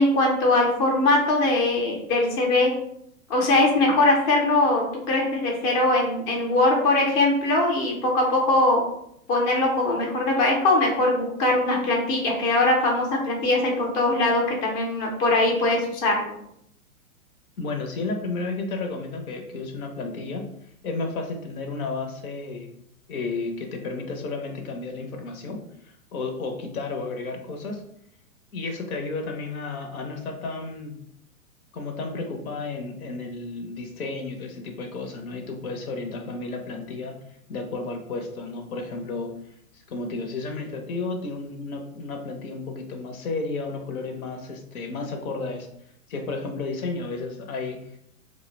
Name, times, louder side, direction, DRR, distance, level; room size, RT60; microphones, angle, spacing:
voice 1, 0.0-2.7 3.3-8.8 9.3-16.3, left 2 dB, 25° left, 0 dB, 0.5 m, -21 dB
voice 2, 17.6-20.5 20.8-22.8 23.1-27.8 28.5-31.0 31.7-37.2 37.5-39.3 39.7-45.7 46.1-48.0, left 3 dB, 75° left, 4 dB, 0.7 m, -32 dB
2.1 x 2.0 x 3.1 m, 0.73 s
hypercardioid pair, 115°, 43 cm